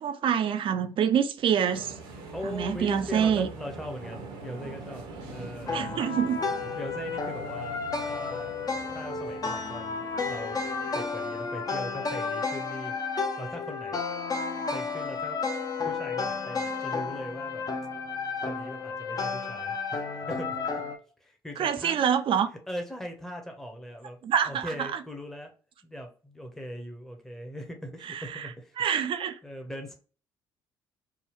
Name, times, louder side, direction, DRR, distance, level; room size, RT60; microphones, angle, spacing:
voice 1, 0.0-1.9 2.4-3.5 5.7-6.4 21.6-22.5 24.2-24.9 28.1-28.4 28.8-29.4, right 8 dB, 50° right, 0.5 m, -26 dB
sound 1, 1.7-11.9, right 3 dB, 75° right, 0.9 m, -44 dB
voice 2, 2.3-6.0 6.8-8.6 8.9-10.6 10.9-12.9 13.4-14.0 14.7-15.4 15.7-17.6 18.4-20.8 21.2-22.0 22.7-24.2 24.4-25.5 25.8-28.8 29.4-29.9, equal, 5° left, 0.8 m, -40 dB
sound 2, 5.7-21.0, left 4 dB, 35° left, 0.7 m, -32 dB
3.4 x 2.2 x 3.1 m
hypercardioid pair, 55°, 11 cm